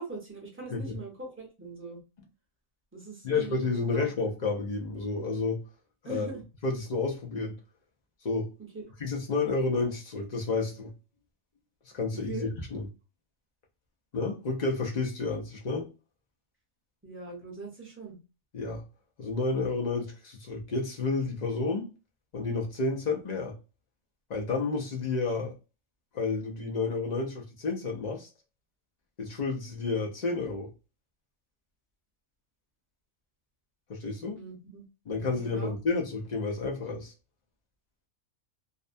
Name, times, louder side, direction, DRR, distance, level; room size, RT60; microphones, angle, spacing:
voice 1, 0.0-2.0 2.9-4.1 6.0-6.4 8.7-8.8 12.3-12.5 17.0-18.2 34.4-34.8 35.1-35.7, right 3 dB, 15° right, 0.5 m, -42 dB
voice 2, 3.2-5.6 6.0-6.3 6.6-7.6 8.2-8.5 9.0-10.9 11.8-12.8 14.1-15.9 18.5-18.8 19.2-21.9 22.3-23.6 24.3-25.5 26.1-28.3 29.2-30.7 33.9-34.4 35.1-37.1, left 3 dB, 80° left, 0.3 m, -30 dB
2.6 x 2.1 x 2.5 m
omnidirectional pair, 1.4 m